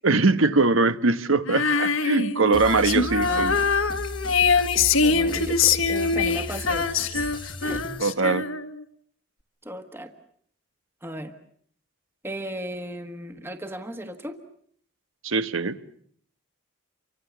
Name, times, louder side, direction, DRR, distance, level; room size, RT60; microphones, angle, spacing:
voice 1, 0.0-3.6 8.0-8.4 15.2-15.8, right 3 dB, 75° right, 12 dB, 1.2 m, -22 dB
Female singing, 1.5-8.8, left 5 dB, 80° left, 1.6 m, -23 dB
sound 1, 2.5-8.0, left 1 dB, 25° left, 1.4 m, -36 dB
voice 2, 3.2-3.6 5.0-7.8 9.6-10.1 11.0-11.3 12.2-14.4, right 1 dB, 10° right, 7 dB, 1.4 m, -36 dB
29.0 x 25.0 x 7.1 m, 0.64 s
head